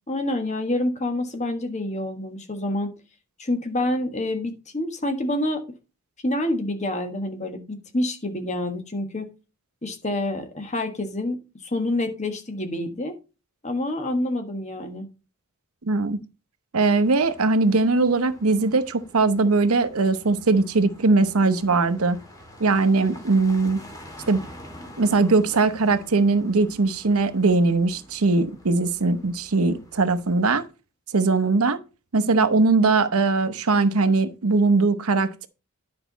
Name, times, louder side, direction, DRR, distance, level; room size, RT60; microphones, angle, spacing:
voice 1, 0.1-2.9 3.4-5.6 6.2-9.3 9.8-11.4 11.6-13.1 13.6-15.1, left 1 dB, 30° left, 1.4 m, -27 dB
voice 2, 15.8-16.2 16.7-22.2 22.6-23.8 24.3-24.4 25.0-30.6 31.1-31.8 32.1-35.5, right 3 dB, 90° right, 0.9 m, -20 dB
sound 1, 17.0-30.7, equal, 15° left, 2.0 m, -47 dB
10.0 x 5.7 x 4.0 m
head